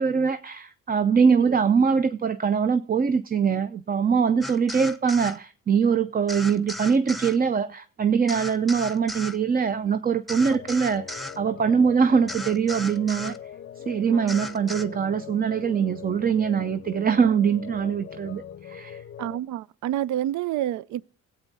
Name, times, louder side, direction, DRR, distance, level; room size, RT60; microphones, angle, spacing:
voice 1, 0.0-13.4 13.9-19.0, right 6 dB, 30° right, 0.6 m, -23 dB
sound 1, 4.4-5.4 6.3-7.4 8.3-9.4 10.3-11.4 12.3-13.4 14.3-14.8, left 1 dB, ahead, 0.8 m, -35 dB
sound 2, 10.3-19.4, left 9 dB, 40° left, 0.6 m, -42 dB
voice 2, 19.2-21.0, right 12 dB, 75° right, 0.5 m, -29 dB
16.5 x 8.2 x 4.0 m
cardioid pair, 90°, 30 cm